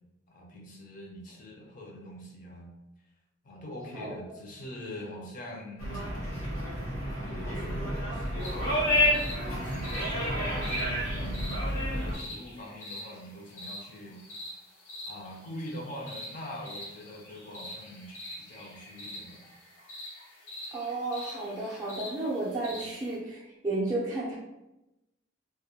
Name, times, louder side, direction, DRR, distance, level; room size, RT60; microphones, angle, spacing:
voice 1, 0.3-2.7 3.4-6.0 7.1-8.8 9.5-14.3 15.1-19.4 22.7-22.9, equal, 40° left, 0 dB, 0.4 m, -43 dB
sound 1, 5.8-12.1, left 1 dB, 90° left, 0.9 m, -30 dB
sound 2, 8.4-23.1, left 1 dB, 65° left, 1.0 m, -45 dB
voice 2, 20.7-24.3, right 2 dB, 15° right, -8 dB, 0.3 m, -32 dB
2.2 x 2.0 x 2.7 m, 0.96 s
head